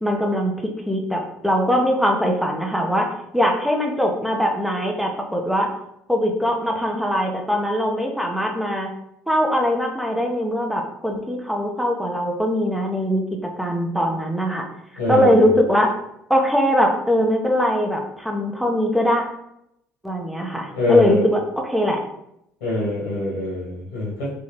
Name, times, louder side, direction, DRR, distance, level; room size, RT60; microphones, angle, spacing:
voice 1, 0.0-0.5 0.9-5.7 6.1-8.9 9.3-14.6 15.1-15.9 16.3-19.2 20.0-22.0, equal, ahead, 2 dB, 0.8 m, -21 dB
voice 2, 15.0-15.5 20.7-21.2 22.6-24.3, left 1 dB, 75° left, -5 dB, 1.4 m, -24 dB
3.6 x 3.1 x 3.1 m, 0.78 s
figure-of-eight pair, 55°, 7 cm